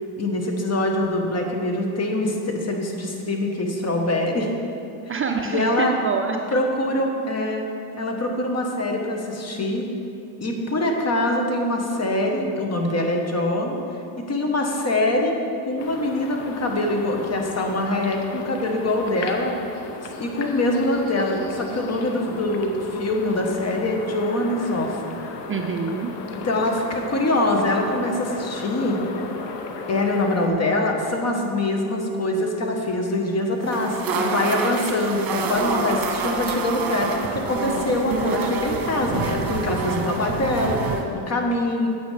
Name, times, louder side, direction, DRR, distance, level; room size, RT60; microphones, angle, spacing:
voice 1, 0.2-4.5 5.1-5.9 6.5-7.6 8.0-9.9 10.4-13.8 14.2-15.4 15.7-19.5 20.0-25.2 26.3-29.0 29.9-41.9, left 1 dB, 35° left, 2 dB, 1.2 m, -24 dB
voice 2, 5.1-6.6 25.5-26.1, right 5 dB, 30° right, 3 dB, 0.5 m, -26 dB
sound 1, 15.8-30.5, left 4 dB, 65° left, 1.0 m, -36 dB
sound 2, 33.6-41.0, right 4 dB, 50° right, 1.2 m, -27 dB
9.2 x 7.9 x 3.4 m, 2.7 s
supercardioid pair, 85°, 47 cm